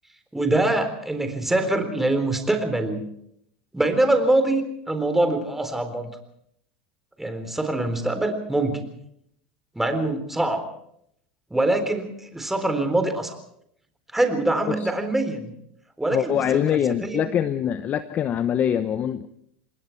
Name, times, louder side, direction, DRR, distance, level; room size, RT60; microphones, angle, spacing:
voice 1, 0.3-3.0 3.7-6.1 7.2-8.8 9.8-10.6 11.5-13.3 14.1-15.5 16.0-16.4 17.0-17.2, right 2 dB, 5° right, 8 dB, 3.9 m, -24 dB
voice 2, 16.1-19.3, left 9 dB, 35° left, 12 dB, 1.0 m, -24 dB
27.0 x 20.5 x 4.7 m, 0.71 s
supercardioid pair, 115°, 5 cm